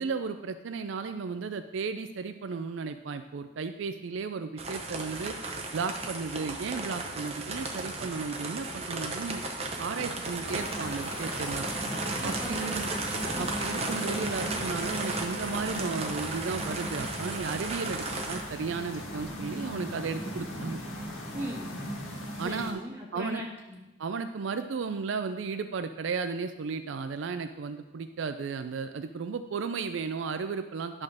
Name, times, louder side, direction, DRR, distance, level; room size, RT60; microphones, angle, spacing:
voice 1, 0.0-5.4 5.7-9.4 9.8-11.6 12.2-12.8 13.4-20.8 22.4-22.8 23.1-23.4 24.0-31.0, right 5 dB, 70° right, 9 dB, 0.4 m, -34 dB
sound 1, 4.6-18.4, right 2 dB, 30° right, 0.8 m, -35 dB
sound 2, 10.4-22.7, equal, 90° left, 1.8 m, -38 dB
voice 2, 12.2-13.5 21.3-21.7 22.4-23.8, equal, 10° right, -2 dB, 1.4 m, -39 dB
10.5 x 3.7 x 6.4 m, 1.1 s
head